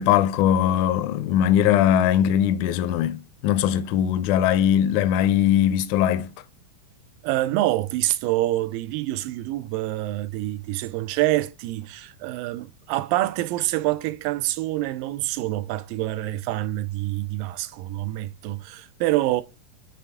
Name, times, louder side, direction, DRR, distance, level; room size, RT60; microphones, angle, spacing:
voice 1, 0.0-6.3, left 10 dB, 80° left, 1.8 m, -20 dB
voice 2, 7.2-19.4, right 16 dB, 90° right, 2.3 m, -26 dB
9.1 x 3.4 x 3.4 m
omnidirectional pair, 4.0 m